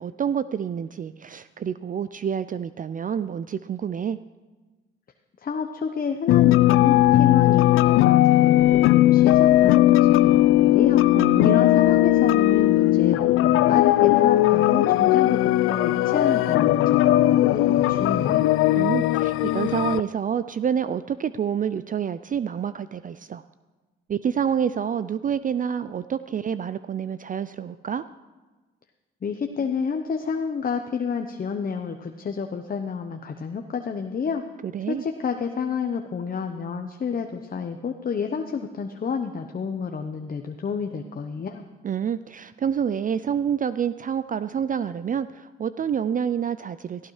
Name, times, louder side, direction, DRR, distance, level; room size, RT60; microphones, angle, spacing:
voice 1, 0.0-4.2 11.1-11.6 18.8-23.4 24.1-28.0 34.6-35.0 41.8-47.1, right 8 dB, 40° right, 14 dB, 0.4 m, -28 dB
voice 2, 5.4-11.0 11.4-18.5 29.2-34.4 34.9-41.6, left 6 dB, 40° left, 5 dB, 0.9 m, -29 dB
sound 1, 6.3-20.0, left 15 dB, 80° left, 0.4 m, -18 dB
16.0 x 15.0 x 3.2 m, 1.3 s
supercardioid pair, 60°, 21 cm